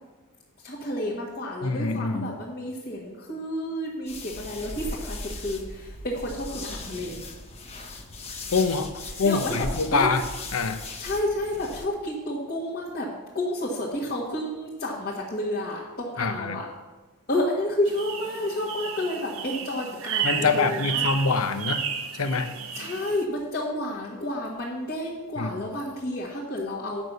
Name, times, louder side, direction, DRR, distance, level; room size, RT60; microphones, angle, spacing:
voice 1, 0.6-7.2 9.2-10.1 11.0-16.7 17.3-21.1 22.7-27.0, left 1 dB, 45° left, -7 dB, 1.6 m, -30 dB
voice 2, 1.6-2.3 8.5-10.2 10.5-10.8 16.2-16.6 20.2-21.8 22.1-22.5 25.4-25.6, left 4 dB, 75° left, 9 dB, 0.8 m, -25 dB
sound 1, 4.1-11.9, left 2 dB, 30° left, 1.0 m, -38 dB
sound 2, 17.9-23.2, right 7 dB, 70° right, 0.7 m, -32 dB
8.9 x 6.2 x 6.7 m, 1.2 s
head